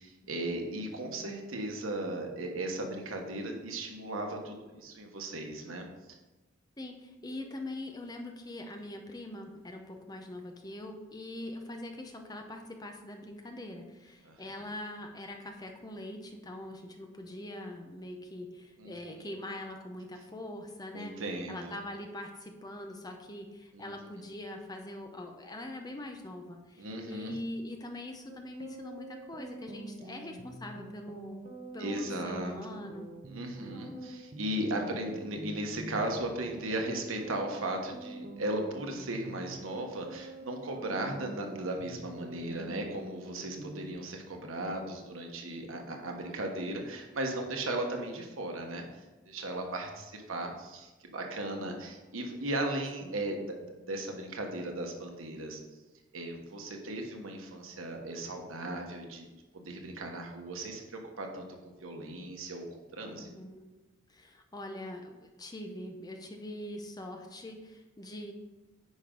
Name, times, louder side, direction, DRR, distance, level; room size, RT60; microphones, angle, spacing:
voice 1, 0.0-5.9 14.2-14.5 18.8-19.2 20.9-21.8 23.7-23.9 26.8-27.3 31.8-32.8 33.3-48.8 49.2-55.6 56.1-59.3 59.5-63.3, right 1 dB, 90° right, 2 dB, 1.3 m, -37 dB
voice 2, 6.8-21.2 21.5-31.4 31.7-33.1 33.7-34.2 51.4-51.8 53.0-53.2 63.1-63.7 64.1-68.3, left 1 dB, 20° left, 4 dB, 0.7 m, -43 dB
sound 1, 28.3-43.9, right 2 dB, 45° right, 0.9 m, -46 dB
9.5 x 5.1 x 3.9 m, 1.1 s
head